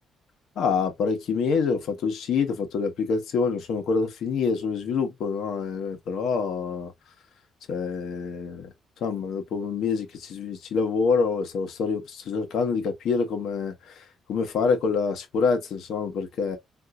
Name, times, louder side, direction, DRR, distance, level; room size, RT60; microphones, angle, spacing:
voice 1, 0.6-6.9 7.7-8.7 9.0-16.6, left 5 dB, 75° left, 1.1 m, -26 dB
3.8 x 2.6 x 2.3 m
cardioid pair, 90°, 0 cm